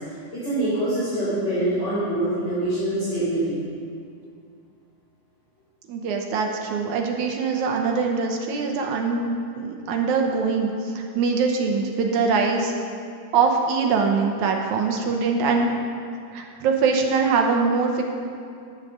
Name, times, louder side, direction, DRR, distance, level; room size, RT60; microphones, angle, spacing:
voice 1, 0.3-3.6, right 1 dB, 20° left, -12 dB, 3.4 m, -24 dB
voice 2, 5.9-12.7 13.3-15.7 16.3-18.0, right 4 dB, 70° right, 2 dB, 2.1 m, -23 dB
10.5 x 7.2 x 6.6 m, 2.3 s
omnidirectional pair, 3.8 m